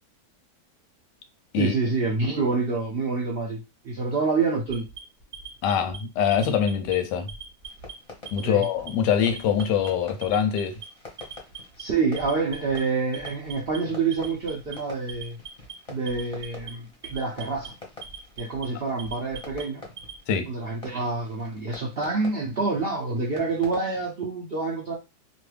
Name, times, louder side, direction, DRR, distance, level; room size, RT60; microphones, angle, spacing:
voice 1, 1.6-4.9 8.4-8.7 11.8-15.4 15.9-17.7 18.4-19.8 20.5-24.9, right 4 dB, 85° right, 0.5 m, -27 dB
Alarm, 4.7-6.0 6.3-6.9 7.3-7.9 8.3-8.9 9.2-9.9 10.2-10.8 11.2-11.8 12.2-12.8 13.1-13.8 14.1-14.8 15.1-15.7 16.1-16.7 17.0-17.7 18.0-18.7 19.0-20.2, right 6 dB, 15° right, 0.9 m, -40 dB
voice 2, 5.6-7.3 8.3-10.7 20.3-20.5, left 8 dB, 90° left, 1.3 m, -24 dB
Fireworks, 7.6-24.1, left 3 dB, 30° left, 0.6 m, -47 dB
3.0 x 2.2 x 3.2 m
omnidirectional pair, 1.8 m